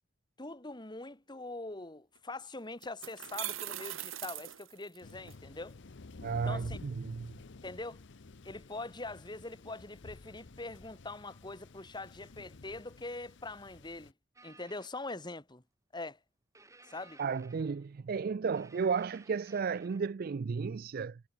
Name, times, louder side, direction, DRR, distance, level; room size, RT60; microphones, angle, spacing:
voice 1, 0.4-5.8 6.4-6.8 7.6-8.0 8.4-14.1 14.4-15.6 15.9-16.2 16.8-17.2, left 2 dB, 20° left, 1.7 m, -43 dB
sound 1, 2.2-2.3 2.8-5.3, right 13 dB, 70° right, 1.3 m, -41 dB
Thunder, 5.0-14.1, left 3 dB, 60° left, 0.8 m, -51 dB
voice 2, 6.2-7.3 17.2-21.2, right 5 dB, 45° right, 0.4 m, -33 dB
sound 2, 14.4-15.0 16.5-18.0 18.5-20.1, right 3 dB, 15° right, 7.6 m, -59 dB
head